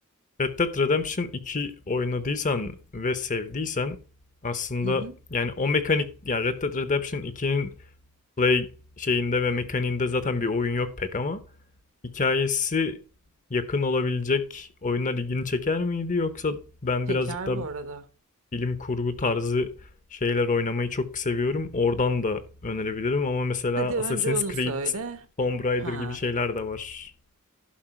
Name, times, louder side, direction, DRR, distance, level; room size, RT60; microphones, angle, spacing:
voice 1, 0.4-4.0 4.4-5.0 5.3-7.7 8.4-8.7 9.0-11.4 12.1-13.0 13.5-17.7 18.5-19.7 20.1-23.9 24.3-24.7 25.4-27.1, left 4 dB, 35° left, 0.8 m, -26 dB
voice 2, 4.8-5.1 17.1-18.0 23.8-25.3 25.8-26.2, right 4 dB, 65° right, 1.2 m, -32 dB
11.5 x 5.5 x 4.3 m
head